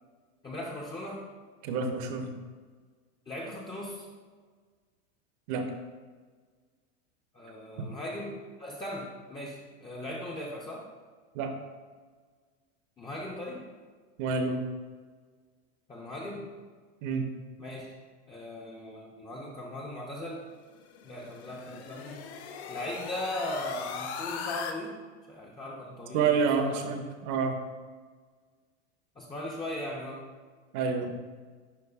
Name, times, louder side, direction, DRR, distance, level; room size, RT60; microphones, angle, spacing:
voice 1, 0.4-1.2 3.3-4.1 7.3-10.9 13.0-13.6 15.9-16.5 17.6-17.9 18.3-20.4 21.0-22.2 22.7-25.0 25.3-26.9 29.2-30.2, left 1 dB, 15° left, -3 dB, 0.6 m, -38 dB
voice 2, 1.6-2.4 5.5-5.7 7.8-7.9 11.3-11.6 14.2-14.6 17.0-17.3 26.1-27.6 30.7-31.1, right 5 dB, 50° right, 6 dB, 0.8 m, -28 dB
sound 1, 20.8-24.7, left 6 dB, 70° left, 0.7 m, -39 dB
10.5 x 3.8 x 2.4 m, 1.5 s
supercardioid pair, 125°, 34 cm